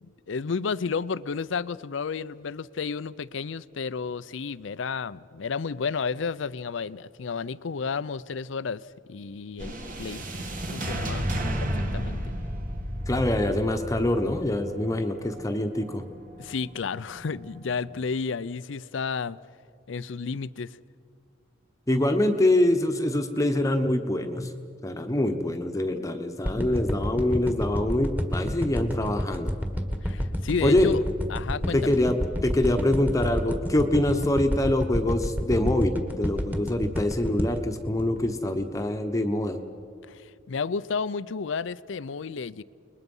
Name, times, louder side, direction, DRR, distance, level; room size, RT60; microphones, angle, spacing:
voice 1, 0.0-10.2 10.7-11.3 11.6-12.2 16.4-19.4 19.9-20.8 30.0-31.0 31.3-32.0 40.1-42.6, left 5 dB, 70° left, 0.5 m, -32 dB
sound 1, 9.6-18.0, equal, 45° right, 2.1 m, -33 dB
voice 2, 13.1-16.0 21.9-24.5 24.8-29.6 30.6-30.9 31.7-39.6, left 1 dB, 15° left, 1.0 m, -25 dB
sound 2, 26.5-38.8 39.2-39.3, equal, 10° right, 1.6 m, -29 dB
30.0 x 21.0 x 5.5 m
head